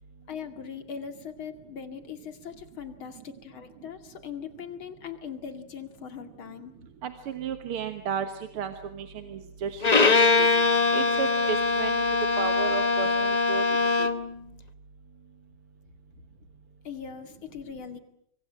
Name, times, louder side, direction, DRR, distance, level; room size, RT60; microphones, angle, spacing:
voice 1, 0.3-6.8 16.8-18.0, left 7 dB, 70° left, 8 dB, 3.1 m, -40 dB
voice 2, 7.0-8.3 8.5-10.1 10.4-10.5 10.9-12.0 12.4-14.1, right 7 dB, 90° right, 8 dB, 2.3 m, -33 dB
Bowed string instrument, 9.8-14.3, left 3 dB, 30° left, 0.7 m, -22 dB
25.5 x 24.0 x 7.8 m, 0.70 s
omnidirectional pair, 2.3 m